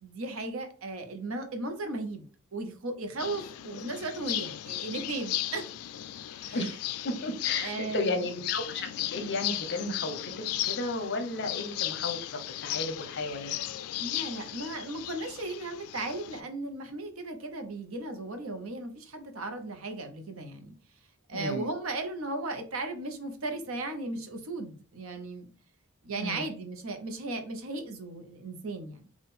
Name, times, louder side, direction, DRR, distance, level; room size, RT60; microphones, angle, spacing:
voice 1, 0.0-5.6 6.4-6.7 7.6-8.2 14.0-20.7 21.3-25.5 26.0-29.1, right 2 dB, 70° right, 6 dB, 0.8 m, -36 dB
sound 1, 3.2-16.4, left 14 dB, 90° left, 0.3 m, -36 dB
voice 2, 7.0-13.5 21.3-21.7 26.2-26.5, left 2 dB, 50° left, 7 dB, 0.7 m, -34 dB
3.6 x 2.4 x 4.1 m, 0.41 s
head